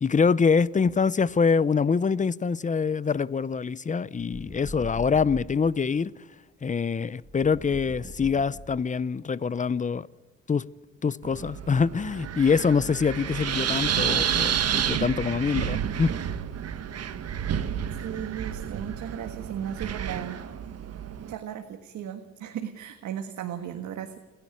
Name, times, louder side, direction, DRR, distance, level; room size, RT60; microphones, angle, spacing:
voice 1, 0.0-6.1 6.6-10.1 10.5-10.7 11.0-16.2, left 5 dB, 25° left, 0.6 m, -25 dB
sound 1, 4.3-5.7 7.2-9.1, equal, 10° right, 2.3 m, -41 dB
Wind, 11.2-21.3, right 9 dB, 55° right, 1.3 m, -30 dB
voice 2, 18.0-20.4 21.3-24.2, right 9 dB, 75° right, 1.6 m, -36 dB
29.5 x 10.5 x 9.8 m
cardioid pair, 90°, 30 cm